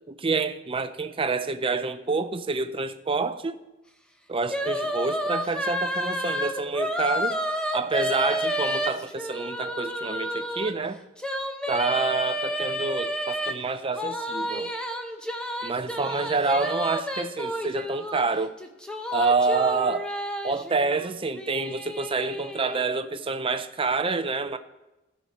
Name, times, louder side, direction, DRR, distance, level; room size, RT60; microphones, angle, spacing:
voice 1, 0.1-3.6 4.3-7.4 7.7-11.0 11.7-14.7 15.6-18.6 19.1-20.1 20.4-24.6, right 4 dB, 25° right, 0.6 m, -27 dB
sound 1, 4.5-10.7 11.2-13.5 13.9-18.2 18.6-22.8, equal, 5° left, 0.8 m, -30 dB
16.5 x 6.6 x 4.2 m
head